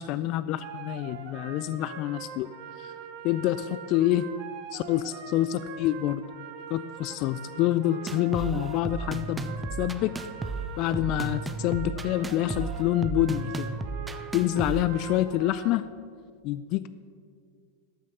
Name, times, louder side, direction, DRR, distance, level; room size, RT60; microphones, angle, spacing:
voice 1, 0.0-2.5 2.8-2.9 3.2-4.2 4.7-6.3 6.7-10.1 10.8-13.7 14.3-15.9 16.4-16.9, left 13 dB, 40° left, 14 dB, 0.3 m, -27 dB
sound 1, 0.6-15.7, right 7 dB, 40° right, 0.9 m, -43 dB
sound 2, 8.1-14.8, right 3 dB, 10° right, 0.6 m, -34 dB
13.5 x 6.2 x 6.9 m, 2.1 s
figure-of-eight pair, 90°, 0 cm